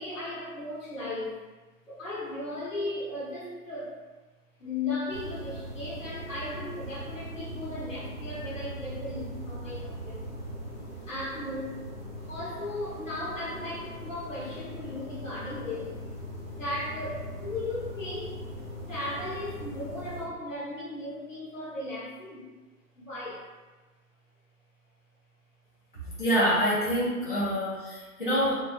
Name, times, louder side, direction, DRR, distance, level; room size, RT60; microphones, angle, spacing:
voice 1, 0.0-1.4 1.9-4.0 4.6-10.2 11.1-11.8 12.3-16.0 16.5-18.4 18.9-22.4 22.9-23.5, left 2 dB, 55° left, -9 dB, 1.3 m, -36 dB
sound 1, 5.1-20.2, equal, 35° right, 0.8 m, -40 dB
voice 2, 25.9-28.5, equal, 35° left, -10 dB, 0.5 m, -26 dB
2.9 x 2.2 x 2.5 m, 1.2 s
hypercardioid pair, 175°, 47 cm